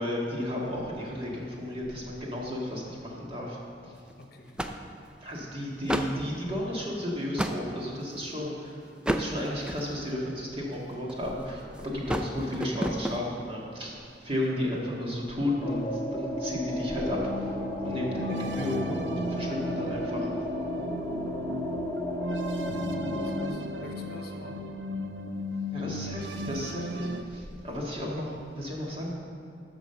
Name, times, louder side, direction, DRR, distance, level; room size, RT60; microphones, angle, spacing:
voice 1, 0.0-3.9 5.2-8.8 9.1-17.3 17.8-20.3 25.7-29.1, left 1 dB, 30° right, -3 dB, 1.8 m, -33 dB
sound 1, 3.9-4.1 4.6-5.3 5.8-6.3 6.9-7.7 8.3-8.5 9.0-10.1 10.7-11.4 11.8-13.2, right 1 dB, 5° right, 0.4 m, -31 dB
voice 2, 4.2-4.6 14.4-14.6 22.5-22.7 23.2-24.6 27.7-27.8, left 2 dB, 60° left, 3 dB, 1.0 m, -48 dB
sound 2, 15.6-23.5, left 1 dB, 15° left, 0.8 m, -34 dB
sound 3, 17.1-27.2, equal, 85° right, 0.6 m, -35 dB
9.5 x 6.2 x 6.8 m, 2.5 s
head